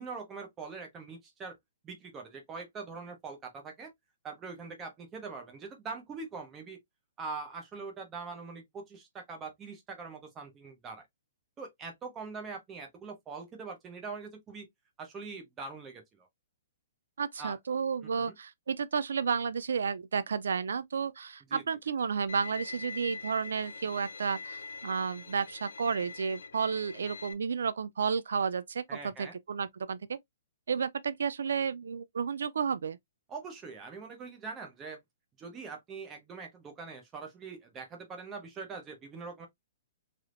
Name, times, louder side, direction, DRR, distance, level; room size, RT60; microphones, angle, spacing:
voice 1, 0.0-1.5 1.8-3.9 4.2-6.8 7.2-11.0 11.6-14.7 15.0-16.3 17.4-17.6 18.0-18.3 21.5-21.6 28.9-29.3 33.3-35.0 35.4-39.5, right 4 dB, 15° right, 0.8 m, -43 dB
voice 2, 17.2-30.0 30.7-33.0, right 6 dB, 85° right, 0.3 m, -32 dB
Bowed string instrument, 22.3-27.3, left 4 dB, 90° left, 0.6 m, -44 dB
3.4 x 2.7 x 2.5 m
hypercardioid pair, 170°, 0 cm